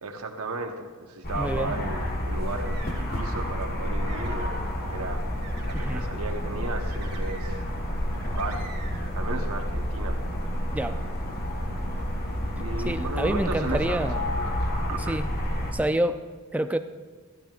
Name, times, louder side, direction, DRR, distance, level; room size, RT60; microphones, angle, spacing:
voice 1, 0.0-4.6 4.8-5.2 5.6-7.6 8.1-8.7 9.1-10.2 12.6-14.4 14.9-15.2, right 2 dB, 90° right, 5 dB, 1.1 m, -35 dB
sound 1, 1.2-15.7, equal, 45° left, 1.4 m, -29 dB
voice 2, 1.4-1.7 5.7-6.0 10.7-11.0 12.8-14.2 15.1-15.3 15.7-16.2 16.5-16.8, right 1 dB, 5° right, 8 dB, 0.4 m, -27 dB
sound 2, 2.5-3.3 3.8-4.6 5.4-6.0 6.8-7.8 8.1-9.1, right 4 dB, 50° right, 2.1 m, -47 dB
14.0 x 12.0 x 2.5 m, 1.5 s
head